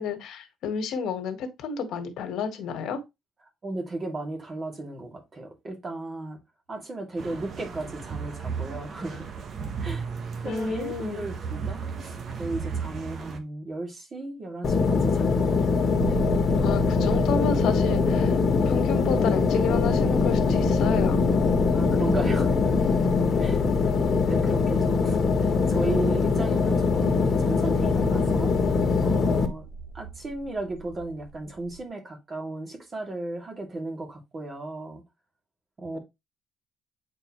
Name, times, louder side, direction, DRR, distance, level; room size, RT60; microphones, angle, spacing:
voice 1, 0.0-3.0 10.4-11.3 16.6-18.4 18.6-21.2, left 5 dB, 75° left, 1.5 m, -30 dB
voice 2, 3.6-6.4 6.7-9.4 9.8-10.1 10.4-16.2 21.7-22.7 23.4-23.6 24.2-28.5 29.0-29.7 29.9-35.0 35.8-36.0, right 2 dB, 35° right, 2.5 m, -35 dB
sound 1, 7.2-13.4, right 5 dB, 50° right, 1.3 m, -35 dB
sound 2, 14.6-29.5, left 4 dB, 45° left, 1.5 m, -22 dB
sound 3, 15.9-31.8, right 1 dB, 75° right, 0.9 m, -37 dB
8.6 x 4.6 x 3.0 m
cardioid pair, 105°, 0 cm